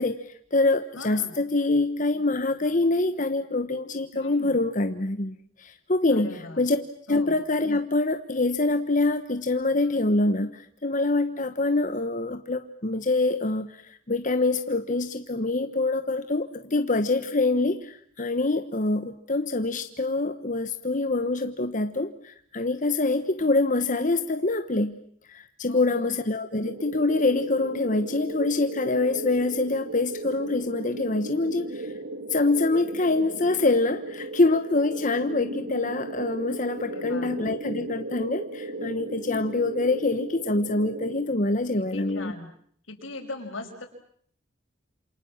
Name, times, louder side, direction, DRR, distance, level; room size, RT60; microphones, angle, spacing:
voice 1, 0.0-6.8 7.1-25.0 25.3-31.9 32.3-42.3, left 2 dB, 40° left, 8 dB, 1.3 m, -25 dB
voice 2, 1.0-1.3 4.1-4.5 6.1-6.6 7.1-7.4 25.7-26.1 36.8-37.3 41.8-42.5 42.9-43.9, left 2 dB, 90° left, 4 dB, 6.1 m, -39 dB
sound 1, 26.6-41.3, right 2 dB, 80° right, 3.0 m, -36 dB
28.0 x 28.0 x 7.4 m, 0.64 s
head